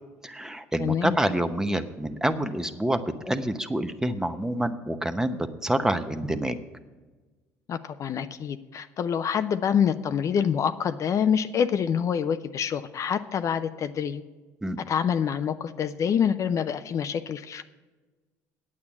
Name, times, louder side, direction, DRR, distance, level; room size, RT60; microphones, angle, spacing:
voice 1, 0.2-6.6 14.6-14.8, right 1 dB, 10° right, 9 dB, 0.8 m, -27 dB
voice 2, 0.8-1.2 7.7-14.2 14.9-17.6, left 8 dB, 50° left, 10 dB, 0.5 m, -26 dB
8.8 x 8.4 x 7.1 m, 1.3 s
supercardioid pair, 80°, 7 cm